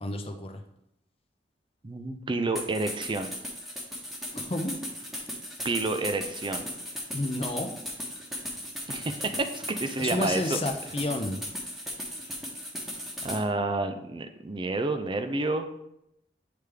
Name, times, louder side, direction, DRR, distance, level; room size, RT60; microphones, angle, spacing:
voice 1, 0.0-0.6 4.3-4.7 7.1-7.7 10.0-11.4, left 2 dB, 30° left, 4 dB, 0.6 m, -31 dB
voice 2, 1.8-3.3 5.6-6.7 8.9-10.6 13.2-15.7, right 2 dB, 25° right, 7 dB, 0.4 m, -29 dB
sound 1, 2.5-13.4, equal, ahead, 1.0 m, -37 dB
9.2 x 3.4 x 3.3 m, 0.80 s
head